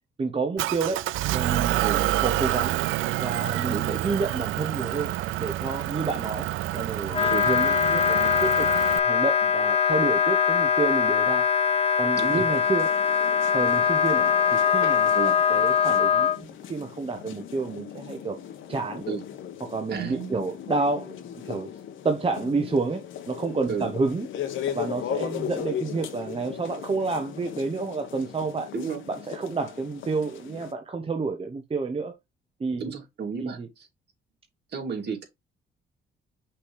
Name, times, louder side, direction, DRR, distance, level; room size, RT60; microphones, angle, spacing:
voice 1, 0.2-1.0 1.3-2.8 3.2-5.1 5.4-8.7 9.0-11.5 12.0-12.9 13.5-18.4 18.7-19.0 19.6-21.1 21.5-21.7 22.0-24.3 24.7-28.7 29.1-32.1 32.6-32.9 33.4-33.7, right 4 dB, 30° right, 1.0 m, -29 dB
Motor vehicle (road) / Engine, 0.6-9.0, right 15 dB, 85° right, 0.5 m, -28 dB
voice 2, 3.7-4.0 7.3-7.4 12.2-12.4 15.1-15.4 19.1-19.2 19.9-20.5 23.7-23.9 28.7-29.0 32.8-33.9 34.7-35.2, right 6 dB, 55° right, 2.8 m, -32 dB
Wind instrument woodwind instrument, 7.1-16.4, left 7 dB, 30° left, 1.0 m, -22 dB
sound 1, 12.2-30.7, left 9 dB, 80° left, 1.3 m, -38 dB
5.9 x 3.3 x 4.9 m
cardioid pair, 90°, 20 cm